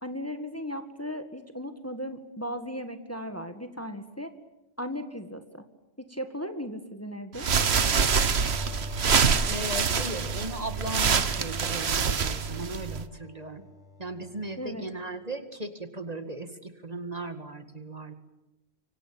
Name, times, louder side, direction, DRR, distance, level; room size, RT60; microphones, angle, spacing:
voice 1, 0.0-4.3 4.8-5.6 6.1-7.5 14.6-14.8, equal, 15° left, 8 dB, 1.8 m, -36 dB
sound 1, 7.3-13.0, right 6 dB, 85° right, 1.5 m, -25 dB
sound 2, 7.5-14.9, left 4 dB, 5° right, 6.3 m, -46 dB
voice 2, 9.5-13.6 14.0-18.1, right 2 dB, 40° right, 9 dB, 2.1 m, -37 dB
26.0 x 24.5 x 8.8 m, 0.97 s
omnidirectional pair, 1.0 m